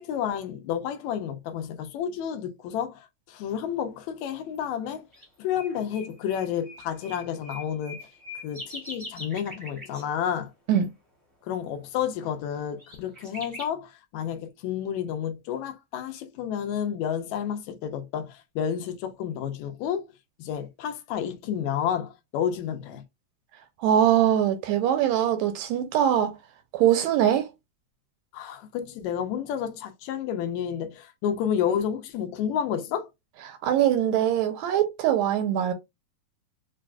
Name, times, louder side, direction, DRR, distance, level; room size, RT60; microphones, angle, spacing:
voice 1, 0.0-5.0 5.4-8.1 8.4-10.5 11.4-20.1 20.4-23.0 28.3-33.1, left 9 dB, 80° left, 1.9 m, -30 dB
sound 1, 4.5-4.6 5.1-5.2 5.5-10.1 10.7-10.8 12.2-12.3 12.8-13.7, left 1 dB, 30° right, 0.5 m, -42 dB
voice 2, 23.8-26.3 26.7-27.5 33.5-35.7, right 10 dB, 80° right, 1.7 m, -22 dB
5.5 x 2.5 x 2.2 m
omnidirectional pair, 3.4 m